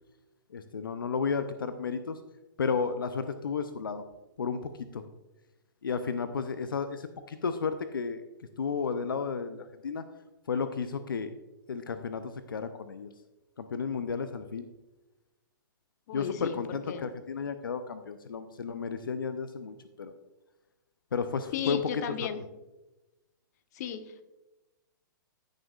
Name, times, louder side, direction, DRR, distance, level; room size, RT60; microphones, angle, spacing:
voice 1, 0.5-2.2 2.6-4.0 4.4-5.0 5.8-8.2 8.6-10.0 10.5-11.3 11.7-13.1 13.6-14.7 16.1-20.1 21.1-21.8, left 5 dB, 80° left, 10 dB, 0.6 m, -33 dB
voice 2, 16.1-17.1 21.5-22.4 23.7-24.2, left 8 dB, 50° left, 10 dB, 0.8 m, -35 dB
14.0 x 6.5 x 2.4 m, 1.0 s
hypercardioid pair, 125°, 11 cm